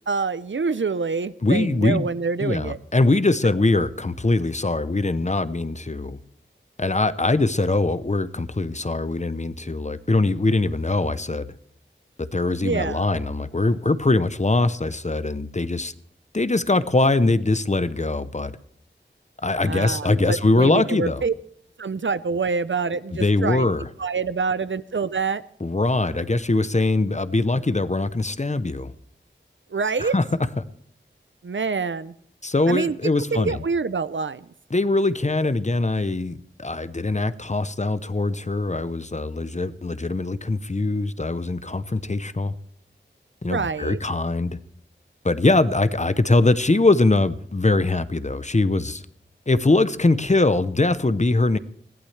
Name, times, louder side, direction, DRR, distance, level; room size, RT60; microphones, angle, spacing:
voice 1, 0.1-2.8 12.6-13.1 19.6-21.3 21.8-23.7 24.0-25.4 29.7-30.1 31.4-32.1 32.7-32.9 33.3-34.5 43.5-44.0, right 5 dB, 70° right, 16 dB, 0.6 m, -26 dB
voice 2, 1.4-2.1 2.4-6.2 6.8-11.5 12.2-15.9 16.3-18.5 19.4-21.2 23.1-23.9 25.6-28.9 30.0-30.6 32.4-33.6 34.7-42.5 43.4-44.6 45.2-49.0 49.5-51.6, left 2 dB, 35° left, 14 dB, 0.8 m, -22 dB
20.5 x 15.5 x 3.3 m, 0.66 s
wide cardioid pair, 45°, 20 cm